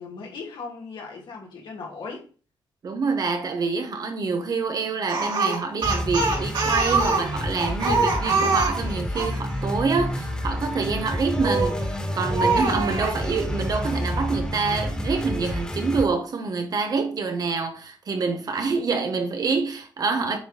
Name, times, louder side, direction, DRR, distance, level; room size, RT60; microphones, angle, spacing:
voice 1, 0.0-2.3, left 4 dB, 70° left, 2.5 m, -38 dB
voice 2, 2.8-20.4, right 4 dB, 50° right, 1.3 m, -26 dB
Speech, 5.1-9.4 11.4-11.8 12.3-13.2, right 4 dB, 70° right, 3.5 m, -24 dB
sound 1, 5.8-16.0, left 1 dB, 10° left, 2.0 m, -29 dB
8.5 x 3.1 x 4.1 m
cardioid pair, 85°, 8 cm